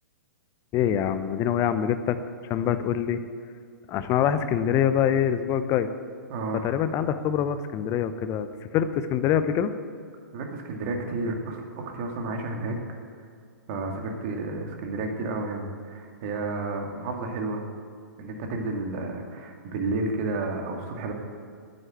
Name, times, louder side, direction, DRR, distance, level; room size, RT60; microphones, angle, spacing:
voice 1, 0.7-2.2 2.4-3.3 3.9-5.9 6.6-8.5 8.7-9.7, left 9 dB, 30° left, 11 dB, 0.8 m, -24 dB
voice 2, 6.3-6.8 10.3-13.0 13.7-17.6 18.2-21.1, right 2 dB, 45° right, 2 dB, 2.4 m, -31 dB
10.0 x 9.5 x 8.8 m, 2.3 s
figure-of-eight pair, 115°, 10 cm